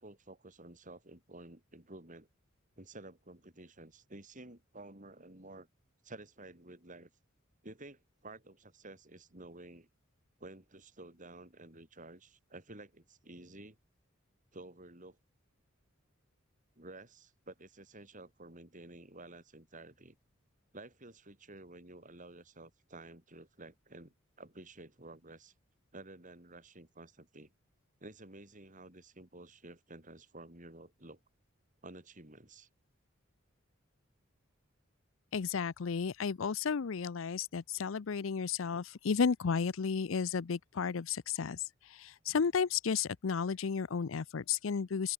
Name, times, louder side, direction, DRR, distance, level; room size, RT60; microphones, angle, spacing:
voice 1, 0.0-2.3 2.8-5.7 6.0-7.1 7.6-9.9 10.4-13.8 14.5-15.2 16.8-20.2 20.7-25.5 25.9-27.5 28.0-31.2 31.8-32.7, right 2 dB, 40° right, 4.6 m, -52 dB
voice 2, 35.3-41.6 41.9-45.1, left 6 dB, 70° left, 0.5 m, -33 dB
open air
head